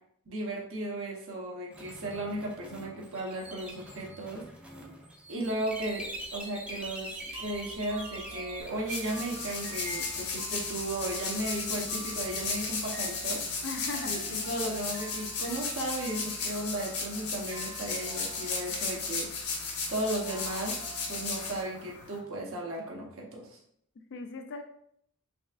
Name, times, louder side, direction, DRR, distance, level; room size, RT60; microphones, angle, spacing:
voice 1, 0.3-4.4 5.3-13.4 14.0-19.3 19.9-20.8 21.1-23.6, right 1 dB, 65° right, -2 dB, 0.9 m, -35 dB
sound 1, 1.7-8.7, right 1 dB, 5° right, 0.5 m, -44 dB
sound 2, 7.3-21.6, right 2 dB, 45° right, 1.4 m, -47 dB
sound 3, 8.6-22.2, left 4 dB, 80° left, 1.1 m, -35 dB
voice 2, 13.6-14.5 24.1-24.6, left 3 dB, 55° left, 5 dB, 0.4 m, -39 dB
4.0 x 3.4 x 2.4 m, 0.68 s
head